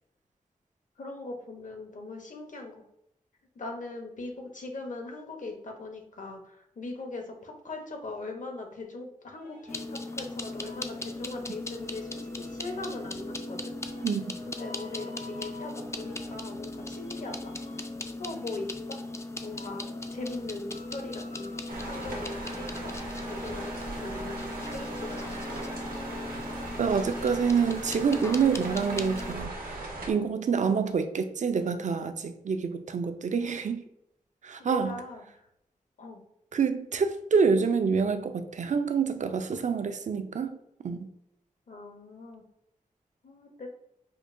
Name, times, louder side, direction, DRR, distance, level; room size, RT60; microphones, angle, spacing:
voice 1, 1.0-2.8 3.6-13.7 14.5-17.5 18.2-19.0 19.4-22.9 23.2-23.7 23.9-25.5 34.6-35.2 36.0-36.2 41.7-42.4 43.2-43.7, left 2 dB, 60° left, 0.8 m, -40 dB
sound 1, 9.3-27.1, equal, 85° left, 1.1 m, -47 dB
sound 2, 9.7-29.3, left 2 dB, 20° left, 0.3 m, -39 dB
sound 3, 21.7-30.1, right 2 dB, 75° right, 0.8 m, -38 dB
voice 2, 26.8-29.8 30.1-33.8 34.4-34.9 36.5-40.6 40.8-41.1, right 5 dB, 55° right, 0.4 m, -27 dB
5.0 x 2.2 x 2.5 m
cardioid pair, 50°, 15 cm